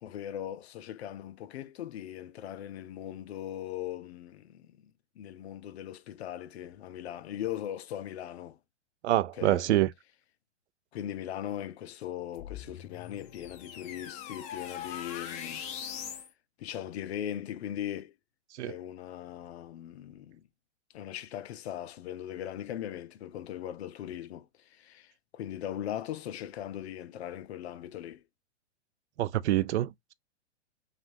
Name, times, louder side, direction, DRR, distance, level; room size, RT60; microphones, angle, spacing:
voice 1, 0.0-4.8 5.2-8.6 9.3-9.7 10.9-15.7 16.6-18.1 18.6-20.4 20.9-28.2, left 11 dB, 60° left, 0.7 m, -39 dB
voice 2, 9.0-9.9 18.6-18.7 29.2-30.1, right 14 dB, 65° right, 0.5 m, -26 dB
sound 1, 12.4-16.3, left 9 dB, 20° left, 0.5 m, -41 dB
5.8 x 2.5 x 2.6 m
hypercardioid pair, 130°, 36 cm